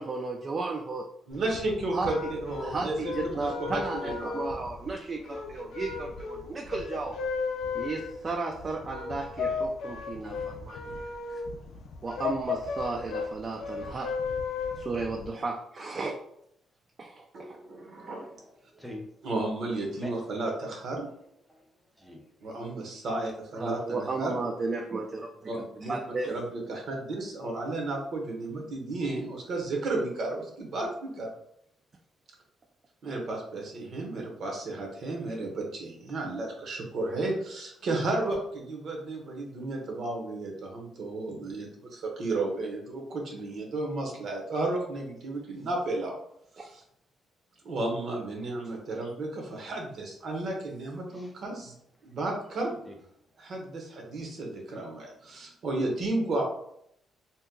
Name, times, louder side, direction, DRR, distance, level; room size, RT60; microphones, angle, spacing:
voice 1, 0.0-1.1 1.9-2.1 2.6-7.2 7.7-10.9 11.3-11.4 12.0-14.2 14.8-16.2 17.0-17.6 23.6-25.5 25.8-26.3 46.6-46.7, right 3 dB, 40° right, 1 dB, 0.4 m, -34 dB
sound 1, 1.3-15.3, left 5 dB, 75° left, 0.4 m, -35 dB
voice 2, 1.3-4.4 7.6-7.7 17.3-18.3 19.2-21.1 22.4-24.4 25.5-26.0 26.3-31.3 33.0-46.2 46.6-46.8 47.6-51.7 52.0-52.7 53.4-56.5, right 2 dB, 60° right, 1 dB, 0.9 m, -33 dB
voice 3, 18.1-19.1 19.9-20.1 21.5-21.6 22.0-22.5 51.1-51.3 52.9-53.0, left 1 dB, 5° right, 1 dB, 0.7 m, -44 dB
2.8 x 2.1 x 3.6 m, 0.71 s
cardioid pair, 90°, 0 cm